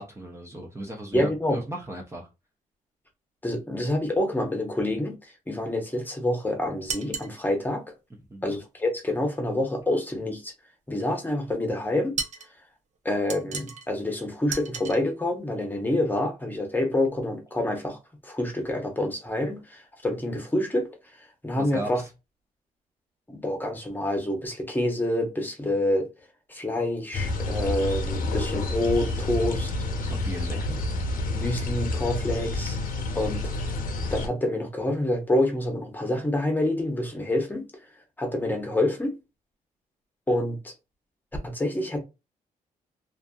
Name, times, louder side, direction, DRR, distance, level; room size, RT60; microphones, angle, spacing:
voice 1, 0.0-2.3 8.3-8.5 21.6-22.1 30.0-30.9, right 1 dB, 20° right, 0.6 m, -36 dB
voice 2, 1.1-1.6 3.4-7.9 8.4-10.5 10.9-12.2 13.0-20.9 21.4-22.0 23.3-26.1 26.5-29.7 30.5-30.6 31.3-32.8 33.1-33.7 34.1-37.7 38.2-39.2 40.3-40.7 41.4-42.0, left 1 dB, 15° left, 0.9 m, -27 dB
sound 1, 6.9-7.3 12.2-12.5 13.3-13.9 14.5-15.0, right 5 dB, 55° right, 0.7 m, -33 dB
sound 2, 27.1-34.3, left 2 dB, 70° left, 0.7 m, -29 dB
2.6 x 2.5 x 2.3 m
cardioid pair, 105°, 15 cm